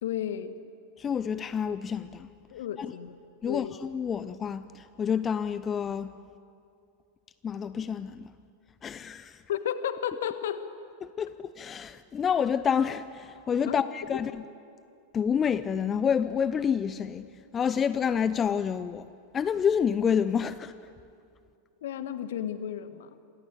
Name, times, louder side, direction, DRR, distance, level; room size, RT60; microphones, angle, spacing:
voice 1, 0.0-0.5 2.5-3.2 3.5-3.8 9.5-10.6 13.7-13.8 14.1-14.2 21.8-23.2, left 10 dB, 60° left, 1.7 m, -33 dB
voice 2, 1.0-2.3 2.8-2.9 3.4-6.1 7.4-8.3 8.8-9.4 11.0-14.3 15.1-17.3 17.5-19.1 19.3-20.7, left 7 dB, 20° left, 0.7 m, -28 dB
28.0 x 25.5 x 8.1 m
figure-of-eight pair, 90°, 0 cm